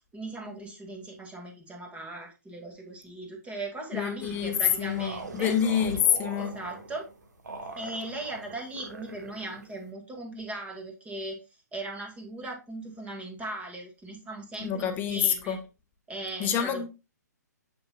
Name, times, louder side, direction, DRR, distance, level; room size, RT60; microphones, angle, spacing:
voice 1, 0.1-5.5 6.4-7.1 7.7-11.4 11.7-15.6 16.1-16.9, right 2 dB, 15° right, 1.9 m, -38 dB
voice 2, 3.9-6.6 14.6-15.6 16.4-16.9, left 9 dB, 20° left, 1.0 m, -27 dB
sound 1, 4.2-9.9, right 3 dB, 75° right, 1.3 m, -42 dB
7.3 x 6.7 x 2.3 m
figure-of-eight pair, 125°, 10 cm